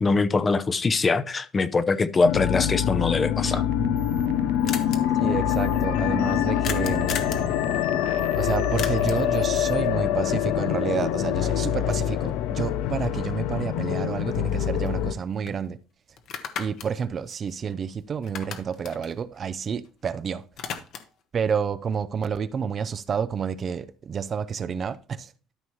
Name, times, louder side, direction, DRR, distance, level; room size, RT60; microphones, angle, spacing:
voice 1, 0.0-3.6, left 3 dB, 20° left, 0.6 m, -23 dB
sound 1, 2.2-15.1, left 11 dB, 80° left, 0.6 m, -25 dB
sound 2, 3.4-9.9, right 13 dB, 90° right, 0.5 m, -38 dB
sound 3, 3.7-3.8 4.0-4.1 4.3-4.4 4.7-5.0 6.6-7.5 8.8-9.3 13.5-13.6 14.0-15.2 15.5-15.6 16.2-17.9 18.2-20.1 20.3-21.2, left 7 dB, 50° left, 1.1 m, -36 dB
voice 2, 5.2-7.2 8.3-15.8 16.6-20.4 21.3-25.3, right 6 dB, 30° right, 0.4 m, -29 dB
12.5 x 5.5 x 3.1 m
cardioid pair, 150°, 0 cm